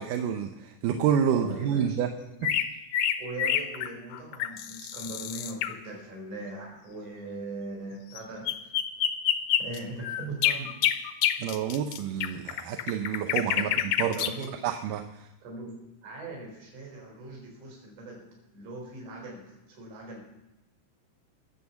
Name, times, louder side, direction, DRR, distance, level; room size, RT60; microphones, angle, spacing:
voice 1, 0.0-2.1 2.4-2.5 11.4-14.2 14.6-15.3, right 8 dB, 90° right, 5 dB, 2.4 m, -28 dB
voice 2, 1.3-2.4 3.2-8.7 9.6-10.8 13.6-13.7 14.2-14.5 15.4-15.7 16.0-18.3 18.5-20.3, right 2 dB, 70° right, -2 dB, 5.7 m, -40 dB
sound 1, 2.4-5.7 8.2-8.3 8.5-14.4, left 10 dB, 80° left, 2.2 m, -28 dB
21.0 x 7.3 x 7.0 m, 0.92 s
omnidirectional pair, 3.7 m